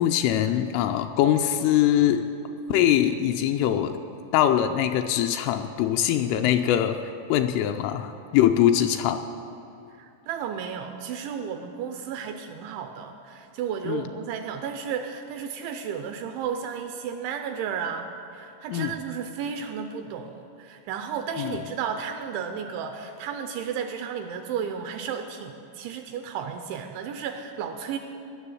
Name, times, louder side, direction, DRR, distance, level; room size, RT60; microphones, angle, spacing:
voice 1, 0.0-2.3 2.7-4.0 4.3-7.0 7.3-9.2 13.9-14.1 18.7-19.0 21.4-21.6, left 11 dB, 85° left, 6 dB, 3.0 m, -22 dB
voice 2, 10.0-28.0, right 7 dB, 85° right, 6 dB, 2.7 m, -33 dB
18.0 x 7.1 x 9.8 m, 2.7 s
omnidirectional pair, 5.9 m